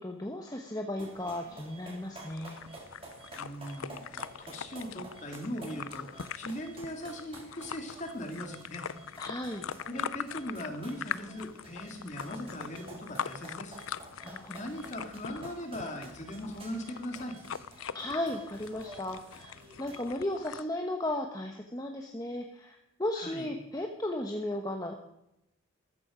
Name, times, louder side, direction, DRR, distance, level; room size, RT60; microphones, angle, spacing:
voice 1, 0.0-2.6 9.2-9.6 14.2-14.7 17.9-19.5 19.8-24.9, left 1 dB, 20° left, 3 dB, 1.0 m, -35 dB
sound 1, 1.0-20.1, right 2 dB, 25° right, 4.0 m, -51 dB
sound 2, 2.3-20.6, left 8 dB, 85° left, 0.5 m, -42 dB
voice 2, 3.4-8.9 9.8-13.8 14.5-17.4 23.1-23.5, equal, 35° left, 3 dB, 2.5 m, -40 dB
14.0 x 14.0 x 5.1 m, 0.85 s
head